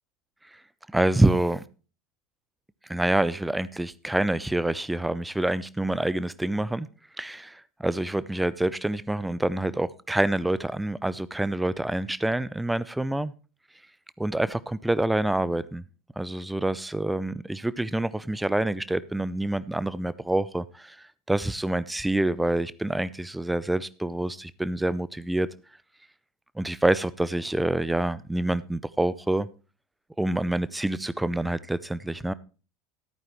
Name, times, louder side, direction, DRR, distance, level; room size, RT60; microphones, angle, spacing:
voice 1, 0.9-1.6 2.9-6.9 7.2-13.3 14.2-15.8 16.2-25.5 26.6-29.5 30.2-32.3, right 1 dB, 5° right, 0.7 m, -27 dB
14.5 x 9.0 x 3.2 m
figure-of-eight pair, 75°, 0 cm